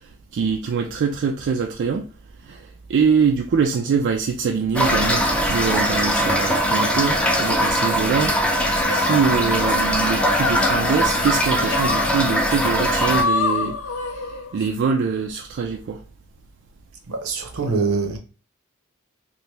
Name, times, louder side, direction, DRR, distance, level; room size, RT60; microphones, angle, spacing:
voice 1, 0.3-2.1 2.4-8.4 8.9-13.8 14.0-14.2 14.5-16.0, right 5 dB, 55° right, 0.3 m, -23 dB
Toilet flush / Fill (with liquid), 4.7-13.2, equal, 5° left, 0.5 m, -21 dB
sound 1, 8.7-14.7, left 4 dB, 65° left, 0.4 m, -27 dB
voice 2, 17.1-18.2, right 4 dB, 75° right, 0.8 m, -24 dB
2.9 x 2.6 x 3.2 m
head